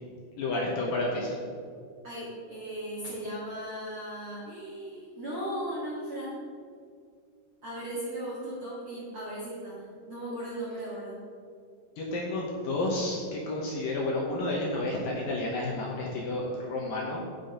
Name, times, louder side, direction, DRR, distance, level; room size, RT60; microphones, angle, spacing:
voice 1, 0.4-1.4 12.0-17.2, left 2 dB, 65° left, -3 dB, 2.5 m, -31 dB
voice 2, 2.0-6.4 7.6-11.2, right 1 dB, 50° right, -9 dB, 1.7 m, -37 dB
8.6 x 7.7 x 5.3 m, 2.3 s
omnidirectional pair, 5.1 m